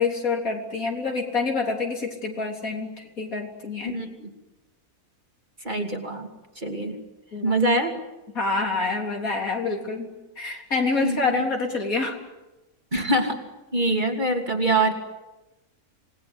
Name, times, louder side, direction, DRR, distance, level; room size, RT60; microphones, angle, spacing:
voice 1, 0.0-4.0 7.3-7.6 8.3-10.1 10.4-12.2, left 4 dB, 70° left, 2 dB, 4.0 m, -27 dB
voice 2, 3.8-4.3 5.6-6.3 6.6-7.0 7.4-7.9 11.0-11.4 12.9-13.4 13.7-14.9, right 2 dB, 30° right, 3 dB, 3.0 m, -24 dB
27.5 x 20.0 x 9.8 m, 1.0 s
omnidirectional pair, 1.5 m